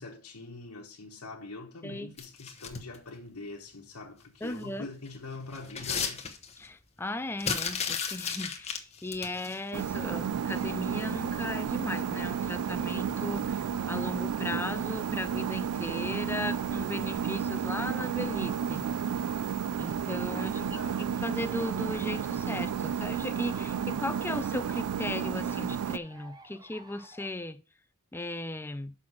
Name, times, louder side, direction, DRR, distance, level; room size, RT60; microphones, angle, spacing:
voice 1, 0.0-6.3 20.4-21.2, left 3 dB, 85° left, 1.2 m, -44 dB
sound 1, 2.2-3.0 4.5-4.7 5.1-6.7 7.4-9.6 10.6-10.7 11.1-11.2, left 6 dB, 30° left, 0.9 m, -34 dB
voice 2, 4.4-4.9 6.6-18.8 19.8-27.6 28.1-28.9, left 2 dB, 10° left, 0.5 m, -37 dB
sound 2, 9.7-26.0, right 7 dB, 80° right, 0.3 m, -32 dB
sound 3, 10.0-27.3, right 2 dB, 15° right, 0.8 m, -52 dB
6.1 x 5.7 x 6.2 m
head